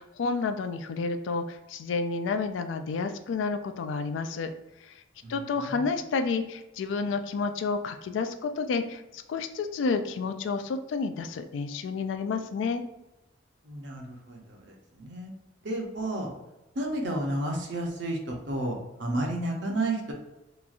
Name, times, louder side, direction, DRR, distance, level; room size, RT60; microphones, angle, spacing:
voice 1, 0.0-4.5 4.8-4.9 5.3-12.8, left 4 dB, 80° left, 8 dB, 0.3 m, -30 dB
voice 2, 13.7-15.3 15.6-16.3 16.8-20.1, right 1 dB, 70° right, 1 dB, 0.6 m, -32 dB
2.9 x 2.3 x 2.4 m, 0.97 s
head